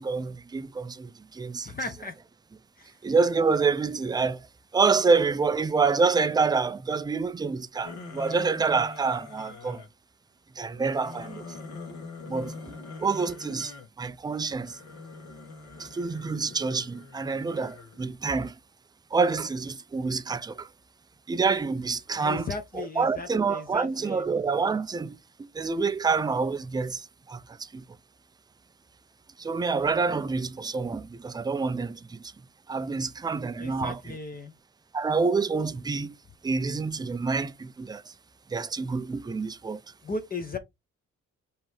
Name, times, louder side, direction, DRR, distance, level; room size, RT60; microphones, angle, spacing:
voice 1, 0.0-1.7 3.0-4.5 4.7-9.8 10.6-11.4 12.3-14.8 15.8-18.6 19.1-20.7 21.3-22.5 22.7-27.8 29.4-32.2 32.7-34.2 34.9-36.2 36.4-38.1 38.5-39.8, right 4 dB, 15° right, 0.4 m, -27 dB
voice 2, 1.6-2.1 2.8-2.9 22.2-24.2 33.6-34.5 40.0-40.6, left 3 dB, 30° left, 0.9 m, -36 dB
sound 1, 7.8-9.9 10.7-13.9 14.6-18.0, left 3 dB, 65° left, 1.7 m, -43 dB
5.1 x 3.0 x 3.3 m
cardioid pair, 90°, 30 cm